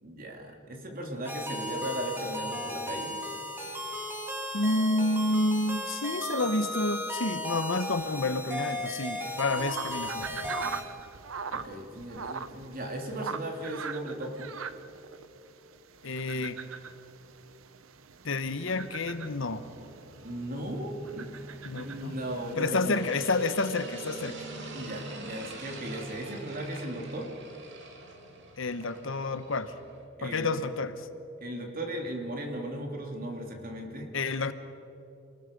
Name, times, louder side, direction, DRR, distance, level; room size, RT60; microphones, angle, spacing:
voice 1, 0.0-3.2 11.5-14.5 20.2-21.4 21.7-23.1 24.7-27.3 30.2-30.5 31.4-34.1, right 1 dB, 45° right, 2 dB, 3.0 m, -37 dB
sound 1, 1.2-10.8, left 1 dB, 10° right, 2.4 m, -35 dB
voice 2, 4.5-10.4 16.0-16.6 18.2-19.7 21.6-22.1 22.6-24.4 28.6-29.7 30.2-31.1 34.1-34.5, left 2 dB, 70° left, 11 dB, 1.1 m, -29 dB
sound 2, 9.5-22.5, right 5 dB, 85° right, 0.8 m, -42 dB
sound 3, 18.5-30.0, right 2 dB, 65° right, 2.6 m, -46 dB
28.5 x 20.0 x 5.4 m, 2.8 s
head